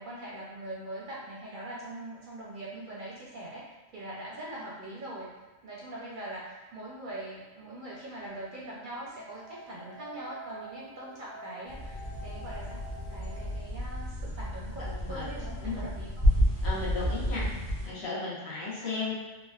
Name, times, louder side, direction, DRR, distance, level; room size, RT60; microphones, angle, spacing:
voice 1, 0.0-3.7 3.9-5.3 5.6-16.3 17.4-17.6 18.8-19.1, right 1 dB, 60° right, -5 dB, 0.6 m, -42 dB
sound 1, 8.2-13.5, right 2 dB, 50° left, 0.6 m, -48 dB
sound 2, 11.7-17.9, equal, 35° left, 1.0 m, -30 dB
voice 2, 16.6-17.5 17.9-19.2, left 3 dB, 65° left, -6 dB, 1.0 m, -35 dB
3.6 x 2.3 x 2.2 m, 1.2 s
omnidirectional pair, 1.2 m